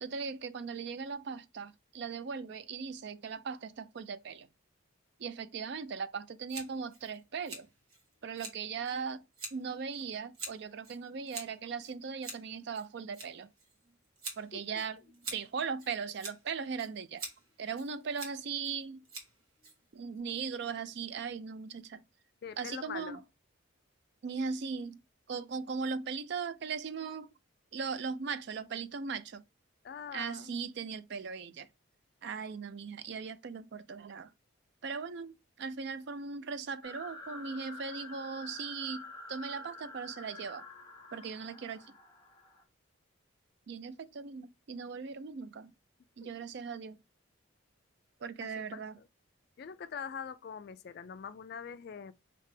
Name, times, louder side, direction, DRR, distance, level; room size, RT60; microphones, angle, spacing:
voice 1, 0.0-4.5 5.2-7.7 8.2-9.2 9.5-13.5 14.4-15.0 15.3-17.2 17.6-19.0 19.9-22.0 22.6-23.2 24.2-25.0 25.3-27.3 27.7-29.4 30.1-31.7 32.2-34.3 34.8-40.7 41.1-41.9 43.7-45.7 46.2-47.0 48.2-49.0, right 5 dB, 55° right, 0.3 m, -38 dB
Scissors, 6.5-20.2, right 3 dB, 90° right, 1.3 m, -47 dB
voice 2, 14.5-14.8 22.4-23.2 29.8-30.5 48.4-49.1 49.6-52.1, left 7 dB, 50° left, 0.3 m, -43 dB
sound 1, 36.8-42.6, left 2 dB, 20° left, 0.8 m, -48 dB
3.3 x 2.8 x 3.2 m
head